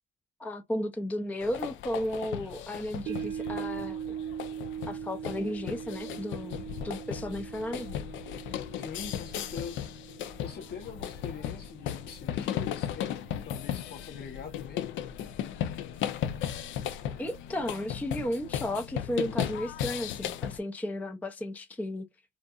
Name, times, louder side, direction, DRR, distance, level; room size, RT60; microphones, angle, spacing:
voice 1, 0.4-4.2 4.9-8.0 17.2-22.1, left 1 dB, 10° left, 0.4 m, -34 dB
sound 1, 1.4-20.6, left 10 dB, 75° left, 0.4 m, -36 dB
sound 2, 3.1-13.4 13.8-13.9, right 9 dB, 55° right, 0.5 m, -41 dB
voice 2, 8.8-9.8 10.4-13.1 13.4-14.9, left 6 dB, 55° left, 0.9 m, -43 dB
2.6 x 2.4 x 2.3 m
supercardioid pair, 80°, 20 cm